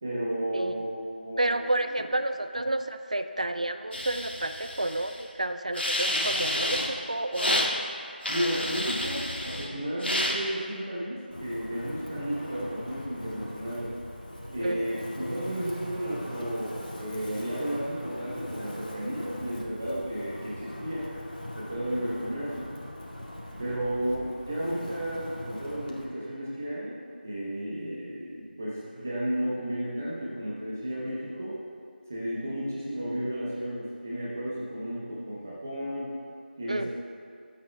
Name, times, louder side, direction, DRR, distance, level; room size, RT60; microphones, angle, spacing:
voice 1, 0.0-1.6 1.9-2.0 8.3-13.9 14.5-21.1 21.6-22.7 23.6-27.0 27.2-31.5 32.1-36.1 36.6-36.9, equal, 15° right, -7 dB, 0.9 m, -33 dB
voice 2, 1.4-7.8 14.6-15.1 36.7-36.9, right 1 dB, 40° right, 9 dB, 0.4 m, -30 dB
sound 1, 3.9-5.2 5.7-6.9 7.3-7.7 8.2-9.7 10.0-10.4, left 1 dB, 90° left, 2.0 m, -29 dB
Wind, 11.3-26.0, left 1 dB, 55° left, 2.2 m, -41 dB
24.0 x 8.8 x 2.3 m, 2.4 s
figure-of-eight pair, 175°, 6 cm